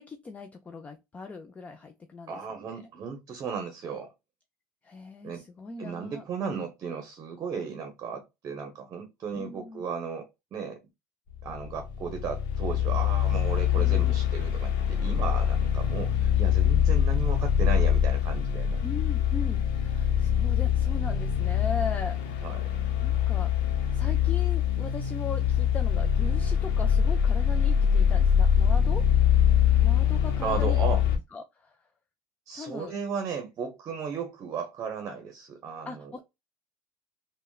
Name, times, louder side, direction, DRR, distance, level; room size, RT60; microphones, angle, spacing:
voice 1, 0.0-2.4 2.7-2.8 4.8-6.2 9.3-9.8 13.8-14.2 16.7-16.8 18.8-22.5 23.0-23.5 23.9-29.1 29.8-31.0 31.3-31.8 32.5-32.9 35.9-36.2, left 4 dB, 20° left, 0.4 m, -39 dB
voice 2, 2.3-4.1 5.2-5.4 5.8-10.8 11.4-18.8 22.4-22.7 30.4-31.0 32.5-36.2, right 6 dB, 40° right, 0.7 m, -35 dB
sound 1, 11.3-31.2, left 9 dB, 70° left, 0.8 m, -24 dB
3.4 x 2.1 x 2.3 m
cardioid pair, 125°, 8 cm